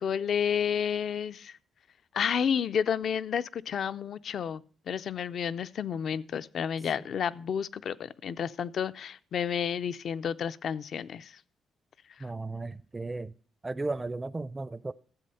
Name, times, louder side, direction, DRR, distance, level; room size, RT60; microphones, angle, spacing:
voice 1, 0.0-1.6 2.1-11.4, left 7 dB, 65° left, 0.4 m, -31 dB
voice 2, 12.2-13.3 13.6-14.9, right 3 dB, 20° right, 0.4 m, -35 dB
13.5 x 7.7 x 5.5 m
cardioid pair, 85°, 0 cm